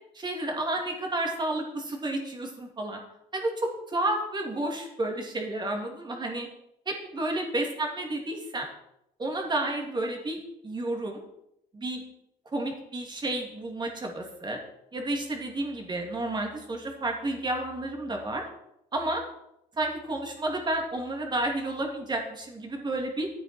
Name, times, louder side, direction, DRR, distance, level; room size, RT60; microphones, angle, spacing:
voice 1, 0.2-3.0 3.3-6.5 6.9-8.7 9.2-11.2 11.7-12.0 12.5-14.6 14.9-18.4 18.9-19.2 19.8-23.3, right 1 dB, 25° right, 1 dB, 2.8 m, -31 dB
12.0 x 8.8 x 4.6 m, 0.81 s
cardioid pair, 110°, 17 cm